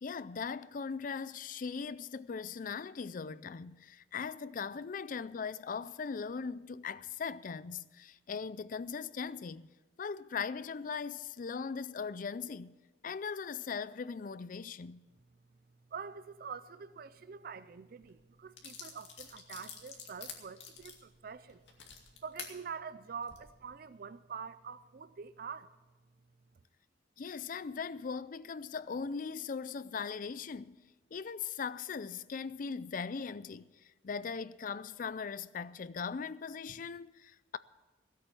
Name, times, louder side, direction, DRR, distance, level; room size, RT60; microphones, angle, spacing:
voice 1, 0.0-9.7 10.0-12.7 13.0-15.1 27.2-30.8 31.1-37.6, left 5 dB, 45° left, 0.4 m, -39 dB
voice 2, 15.9-21.6 22.2-25.7, right 6 dB, 50° right, 0.4 m, -45 dB
sound 1, 18.0-18.1 18.6-22.5 23.1-23.4, left 7 dB, 75° left, 2.3 m, -47 dB
16.5 x 8.6 x 7.0 m
head